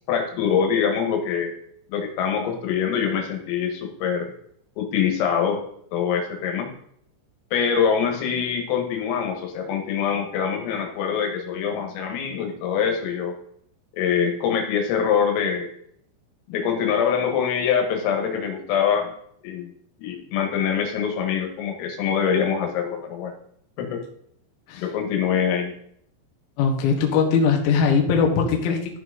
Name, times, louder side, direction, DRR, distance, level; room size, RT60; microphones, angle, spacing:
voice 1, 0.1-1.5 1.9-4.3 4.8-5.6 5.9-6.7 7.5-13.3 14.0-15.7 16.5-19.1 19.4-19.7 20.0-23.3 23.8-24.0 24.8-25.7, left 7 dB, 90° left, 3 dB, 4.2 m, -24 dB
voice 2, 26.6-29.0, left 5 dB, 65° left, 1 dB, 2.7 m, -20 dB
13.5 x 6.0 x 4.0 m, 0.67 s
omnidirectional pair, 5.9 m